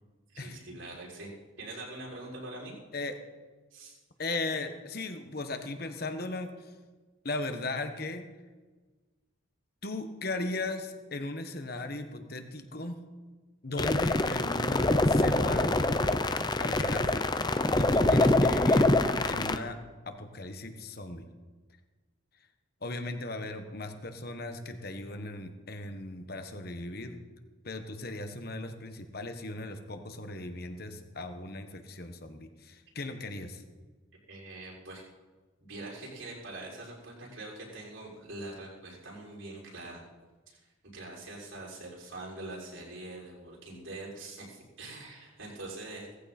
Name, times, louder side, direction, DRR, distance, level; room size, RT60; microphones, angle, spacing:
voice 1, 0.3-1.3 1.6-2.7 3.7-4.0 34.3-35.0 35.6-40.0 40.5-46.2, right 2 dB, 75° right, -4 dB, 6.3 m, -44 dB
voice 2, 4.2-6.7 7.2-8.2 9.8-13.0 13.6-15.7 16.6-17.3 17.8-18.9 19.3-19.8 20.0-21.2 22.8-27.2 27.6-33.6, left 2 dB, 50° left, 7 dB, 1.4 m, -37 dB
sound 1, 13.8-19.6, left 2 dB, 20° left, 0.7 m, -25 dB
18.0 x 15.0 x 4.4 m, 1.3 s
head